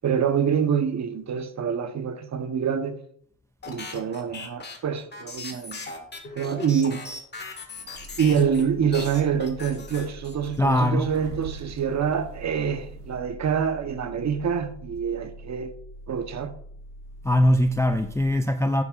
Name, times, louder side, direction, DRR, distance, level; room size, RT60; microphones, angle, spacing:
voice 1, 0.0-3.0 3.7-5.8 6.3-7.0 8.2-15.7 16.1-16.5, right 7 dB, 40° right, 1.1 m, -26 dB
sound 1, 3.6-8.6 8.9-10.6, left 3 dB, 25° left, 1.9 m, -38 dB
sound 2, 7.8-13.2, right 6 dB, 85° right, 1.4 m, -47 dB
sound 3, 7.9-18.3, equal, 55° left, 3.3 m, -44 dB
voice 2, 10.6-11.2 17.2-18.8, left 1 dB, 10° left, 0.3 m, -21 dB
10.0 x 9.7 x 2.5 m
supercardioid pair, 85°, 41 cm